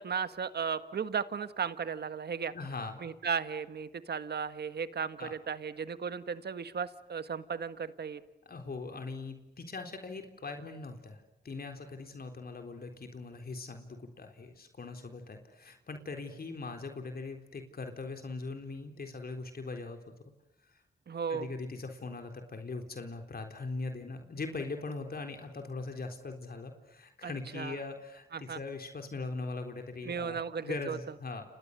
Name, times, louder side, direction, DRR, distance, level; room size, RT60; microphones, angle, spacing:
voice 1, 0.0-2.5 3.0-8.2 21.1-21.5 27.2-27.8 28.3-28.6 30.0-31.0, right 6 dB, 70° right, 12 dB, 1.5 m, -35 dB
voice 2, 2.5-3.0 5.2-5.3 8.5-20.0 21.3-31.4, left 3 dB, 60° left, 5 dB, 3.9 m, -41 dB
29.5 x 29.0 x 6.8 m, 0.91 s
cardioid pair, 50°, 18 cm